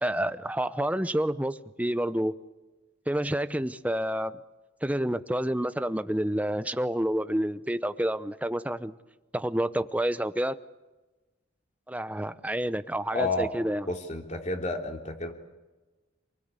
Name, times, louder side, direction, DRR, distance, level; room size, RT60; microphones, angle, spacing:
voice 1, 0.0-2.4 3.1-4.4 4.8-9.0 9.3-10.6 11.9-13.9, right 1 dB, 10° right, 12 dB, 0.8 m, -29 dB
voice 2, 13.1-13.5 13.9-15.3, left 2 dB, 35° left, 3 dB, 3.3 m, -31 dB
27.5 x 20.0 x 8.3 m, 1.1 s
head